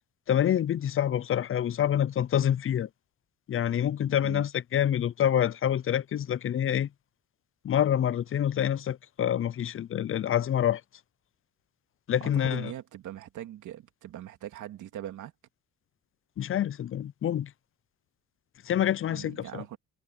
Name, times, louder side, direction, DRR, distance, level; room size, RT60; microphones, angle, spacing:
voice 1, 0.3-2.9 3.5-6.9 7.6-10.8 12.1-12.7 16.4-17.5 18.7-19.6, left 10 dB, 45° left, 0.6 m, -27 dB
voice 2, 4.1-4.5 12.2-15.3 19.1-19.8, right 12 dB, 80° right, 2.7 m, -41 dB
cardioid pair, 90°, 30 cm